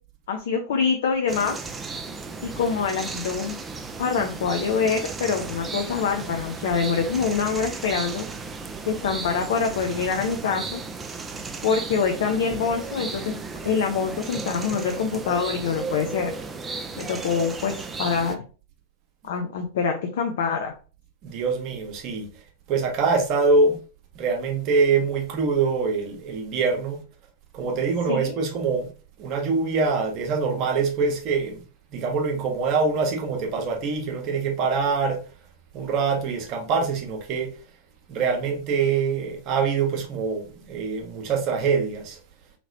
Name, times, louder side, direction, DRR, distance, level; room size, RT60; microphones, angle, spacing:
voice 1, 0.3-1.6 2.4-8.3 8.9-10.8 11.6-13.4 13.6-16.3 17.0-17.7 18.0-18.4 19.2-20.7 28.1-28.4, left 5 dB, 60° left, 0.4 m, -25 dB
sound 1, 1.3-18.3, right 4 dB, 15° right, 0.4 m, -35 dB
voice 2, 21.2-22.3 22.7-23.8 24.1-27.0 27.5-28.9 29.2-31.6 31.9-35.2 35.7-37.5 38.1-42.2, right 4 dB, 40° right, 0.8 m, -24 dB
2.9 x 2.8 x 2.6 m
figure-of-eight pair, 90°, 0 cm